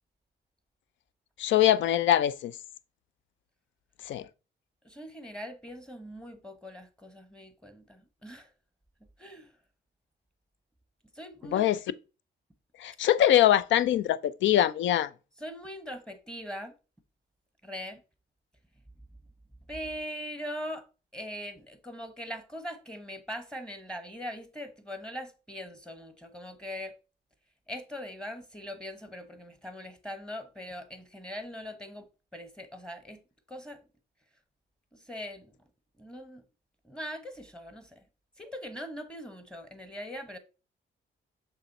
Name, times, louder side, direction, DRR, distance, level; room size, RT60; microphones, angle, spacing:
voice 1, 1.4-2.5 4.1-4.3 11.5-11.8 12.8-15.1, left 12 dB, 70° left, 0.5 m, -23 dB
voice 2, 4.8-8.5 9.2-9.5 11.1-11.7 15.4-16.7 17.6-18.0 19.7-20.9 21.1-26.9 27.7-32.1 32.3-33.2 33.5-33.8 34.9-35.5 36.0-36.4 36.8-38.0 38.4-40.4, equal, 5° left, 1.0 m, -41 dB
6.7 x 3.1 x 5.3 m
cardioid pair, 90°, 20 cm